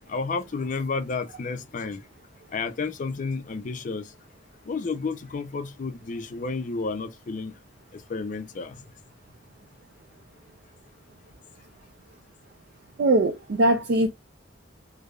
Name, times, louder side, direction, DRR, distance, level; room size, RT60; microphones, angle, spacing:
voice 1, 0.1-2.0 2.5-4.1 4.7-7.5 8.1-8.8, left 4 dB, 45° left, 0.4 m, -31 dB
voice 2, 13.0-14.1, right 1 dB, 60° right, 0.4 m, -21 dB
3.3 x 2.0 x 2.2 m
head